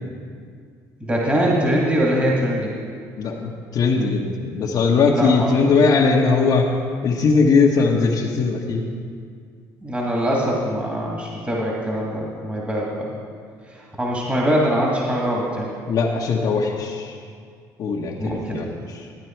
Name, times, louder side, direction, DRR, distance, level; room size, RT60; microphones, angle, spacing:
voice 1, 1.0-2.8 5.1-5.5 9.8-13.1 13.7-15.7 18.2-18.7, equal, 15° right, -3 dB, 2.3 m, -22 dB
voice 2, 3.2-6.6 7.0-8.8 15.9-17.1 17.8-18.7, left 4 dB, 55° left, -2 dB, 1.2 m, -19 dB
13.0 x 9.1 x 4.5 m, 2.1 s
supercardioid pair, 80°, 8 cm